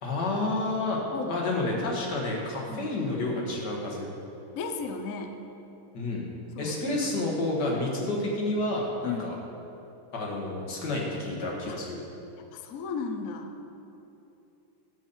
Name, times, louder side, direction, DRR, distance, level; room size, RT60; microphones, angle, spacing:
voice 1, 0.0-1.0 1.3-4.1 5.9-6.3 6.6-9.4 10.1-12.0, left 2 dB, 50° left, -2 dB, 2.1 m, -30 dB
voice 2, 4.5-5.4 6.6-7.1 9.0-9.4 11.7-11.8 12.5-13.5, left 5 dB, 90° left, 5 dB, 0.7 m, -35 dB
10.5 x 5.5 x 7.1 m, 2.9 s
omnidirectional pair, 2.4 m